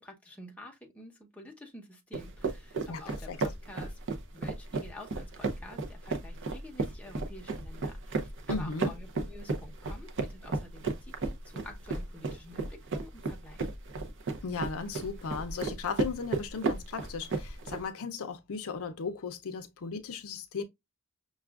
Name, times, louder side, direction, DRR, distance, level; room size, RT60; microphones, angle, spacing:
voice 1, 0.0-4.0 4.3-13.7, left 1 dB, 5° left, 0.8 m, -49 dB
sound 1, 2.1-17.8, right 3 dB, 55° right, 0.6 m, -34 dB
voice 2, 2.9-3.4 8.5-8.9 14.4-20.6, left 5 dB, 65° left, 0.5 m, -36 dB
5.9 x 2.3 x 2.3 m
head